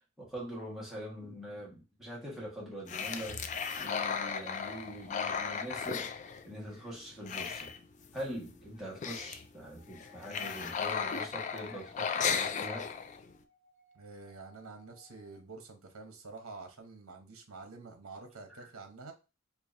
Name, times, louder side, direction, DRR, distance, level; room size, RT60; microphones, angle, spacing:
voice 1, 0.2-6.1 6.4-7.7 8.1-12.9, equal, ahead, -5 dB, 1.4 m, -43 dB
sound 1, 2.9-6.9 7.1-8.2 8.5-8.6 8.8-9.5 9.9-13.3, left 6 dB, 35° left, 0.3 m, -35 dB
sound 2, 9.8-15.4, left 4 dB, 55° left, 1.6 m, -61 dB
voice 2, 13.9-19.1, right 3 dB, 75° right, 5 dB, 0.8 m, -48 dB
4.6 x 2.8 x 2.6 m, 0.30 s
head